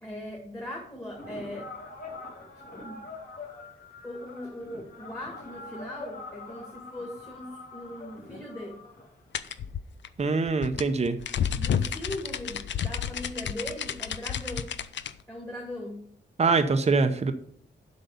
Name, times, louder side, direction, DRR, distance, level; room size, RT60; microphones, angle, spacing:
voice 1, 0.0-1.7 2.6-3.0 4.0-8.8 11.6-14.7 15.3-16.0, left 1 dB, 15° left, -2 dB, 1.9 m, -39 dB
sound 1, 1.2-9.7, left 3 dB, 50° left, 2.9 m, -44 dB
sound 2, 9.3-15.1, left 8 dB, 85° left, 0.5 m, -31 dB
voice 2, 10.2-11.2 16.4-17.3, right 4 dB, 35° right, 7 dB, 0.7 m, -24 dB
7.8 x 5.3 x 6.8 m, 0.65 s
wide cardioid pair, 115°, 18 cm